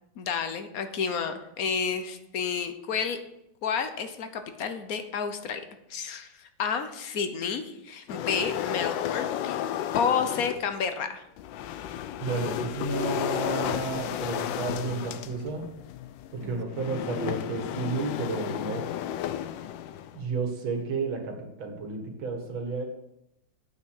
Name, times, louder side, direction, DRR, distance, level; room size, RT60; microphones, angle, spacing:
voice 1, 0.2-3.2 3.6-5.6 5.9-9.6 9.9-11.2 16.4-16.6, left 6 dB, 55° left, 8 dB, 1.1 m, -30 dB
sound 1, 8.1-10.7 11.4-20.2, left 10 dB, 75° left, 1.2 m, -33 dB
voice 2, 12.2-15.7 16.3-18.9 20.1-22.9, right 4 dB, 80° right, 3 dB, 2.4 m, -32 dB
8.7 x 6.1 x 6.5 m, 0.83 s
omnidirectional pair, 2.2 m